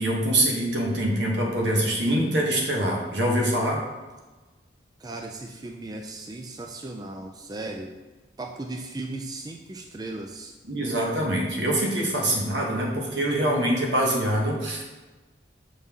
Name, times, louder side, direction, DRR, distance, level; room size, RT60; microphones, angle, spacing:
voice 1, 0.0-3.8 10.7-15.0, right 1 dB, 80° right, -1 dB, 1.3 m, -24 dB
voice 2, 5.0-7.9 8.4-10.5, right 2 dB, 20° right, 2 dB, 0.4 m, -36 dB
6.8 x 4.0 x 3.6 m, 1.2 s
head